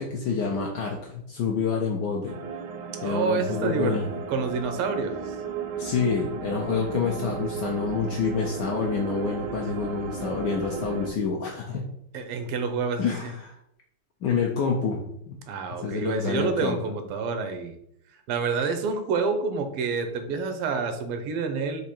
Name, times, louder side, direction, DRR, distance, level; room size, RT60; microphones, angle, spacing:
voice 1, 0.0-2.4 3.0-4.1 5.8-11.9 13.0-13.6 14.2-15.4 15.8-16.8, left 5 dB, 75° left, 0 dB, 1.0 m, -28 dB
sound 1, 2.3-11.1, right 6 dB, 75° right, 1.0 m, -35 dB
voice 2, 2.9-4.0 4.3-5.4 12.1-13.3 15.5-17.8 18.1-21.8, right 4 dB, 90° right, 7 dB, 1.6 m, -28 dB
4.7 x 2.6 x 4.2 m, 0.72 s
omnidirectional pair, 2.4 m